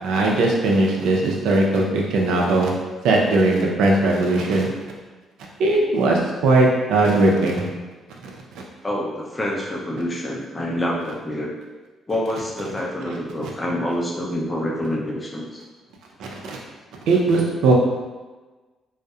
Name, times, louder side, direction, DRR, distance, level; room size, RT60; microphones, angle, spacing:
voice 1, 0.0-2.7 3.0-4.7 5.6-7.6 8.2-8.3 13.1-13.2 13.4-13.5 16.2-16.6 17.1-17.7, right 2 dB, 85° right, 0 dB, 0.4 m, -19 dB
voice 2, 8.8-11.5 12.1-15.6, left 1 dB, 20° left, -2 dB, 0.5 m, -27 dB
2.6 x 2.1 x 2.3 m, 1.3 s
cardioid pair, 90°, 0 cm